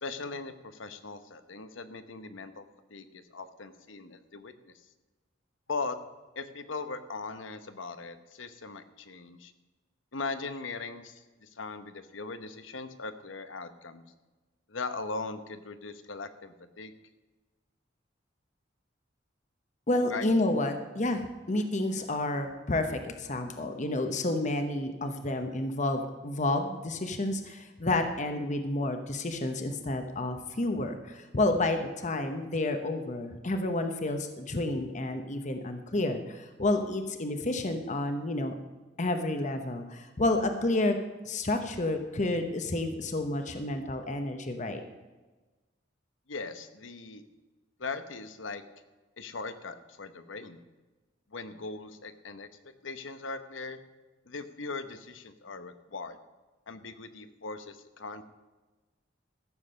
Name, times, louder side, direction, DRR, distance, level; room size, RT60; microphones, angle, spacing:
voice 1, 0.0-2.6 2.9-4.7 5.7-6.0 6.4-9.5 10.1-14.0 14.7-16.9 20.1-20.3 46.3-47.2 47.8-48.6 49.2-50.6 51.3-53.8 54.2-56.2 56.7-58.2, left 4 dB, 90° left, 10 dB, 1.0 m, -39 dB
voice 2, 19.9-38.5 39.0-40.9 41.2-44.8, left 2 dB, 40° left, 6 dB, 1.0 m, -30 dB
14.5 x 7.4 x 6.4 m, 1.2 s
head